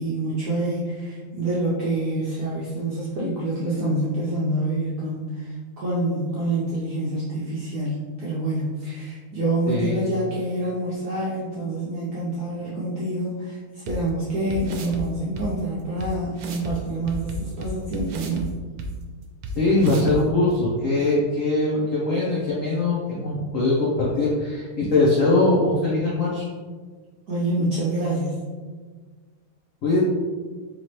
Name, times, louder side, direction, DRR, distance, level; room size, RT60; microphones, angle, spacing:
voice 1, 0.0-18.5 27.3-28.4, right 1 dB, 60° right, -8 dB, 1.1 m, -27 dB
voice 2, 9.7-10.0 19.6-26.4 29.8-30.0, left 2 dB, 65° left, -6 dB, 0.8 m, -21 dB
sound 1, 13.9-14.0 14.5-15.0 15.4-15.5 16.0-16.1 16.4-16.7 17.1-18.5 18.8-18.9 19.4-19.5 19.8-20.2, right 2 dB, 85° right, 1.4 m, -32 dB
4.1 x 3.1 x 2.9 m, 1.5 s
omnidirectional pair, 2.2 m